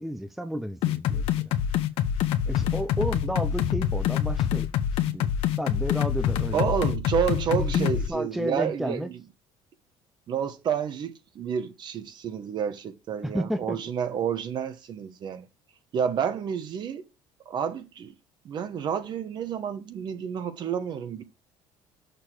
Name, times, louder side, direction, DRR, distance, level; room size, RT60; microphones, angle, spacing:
voice 1, 0.0-1.5 2.5-4.7 5.0-5.3 5.6-6.7 7.5-9.1 13.2-13.8, equal, ahead, 0.6 m, -32 dB
sound 1, 0.8-8.1, left 10 dB, 70° left, 1.0 m, -26 dB
voice 2, 6.5-9.2 10.3-15.4 15.9-17.0 17.4-18.1 18.4-21.2, right 7 dB, 50° right, 1.2 m, -30 dB
6.6 x 6.3 x 4.7 m
cardioid pair, 120°, 10 cm